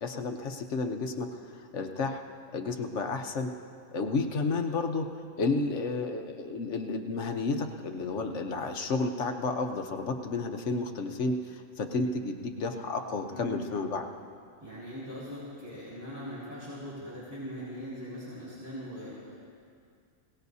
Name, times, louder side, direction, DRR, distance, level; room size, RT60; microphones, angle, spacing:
voice 1, 0.0-2.2 2.5-3.5 3.9-14.1, left 3 dB, 60° left, 5 dB, 1.2 m, -31 dB
voice 2, 13.3-13.6 14.6-19.3, equal, 10° right, -10 dB, 4.4 m, -41 dB
22.0 x 18.0 x 2.8 m, 2.3 s
omnidirectional pair, 1.5 m